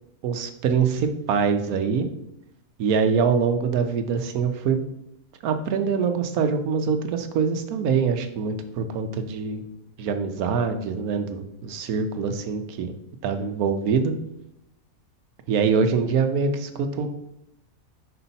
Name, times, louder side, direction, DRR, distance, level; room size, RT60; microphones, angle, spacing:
voice 1, 0.2-2.1 2.8-4.8 5.4-9.6 10.0-12.9 13.2-14.1 15.5-17.1, right 5 dB, 75° right, 7 dB, 1.2 m, -24 dB
5.6 x 5.0 x 4.0 m, 0.80 s
omnidirectional pair, 1.6 m